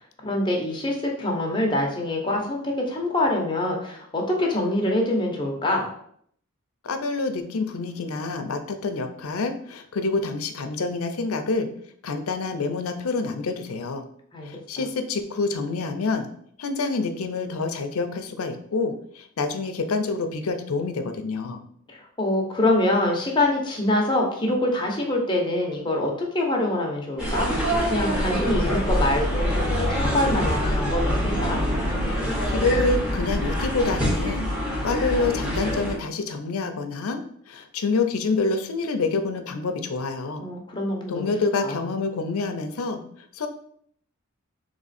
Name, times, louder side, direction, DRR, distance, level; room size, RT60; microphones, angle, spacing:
voice 1, 0.2-5.9 14.3-14.5 21.9-31.6 40.4-41.3 41.6-41.8, left 1 dB, 20° left, 0 dB, 0.8 m, -25 dB
voice 2, 6.8-11.7 12.0-14.0 14.4-16.3 16.6-21.6 32.5-34.5 34.8-40.4 41.1-43.0 43.3-43.5, left 3 dB, 85° left, 7 dB, 0.5 m, -27 dB
sound 1, 27.2-36.0, equal, 5° right, 1.0 m, -25 dB
3.6 x 3.2 x 4.1 m, 0.65 s
head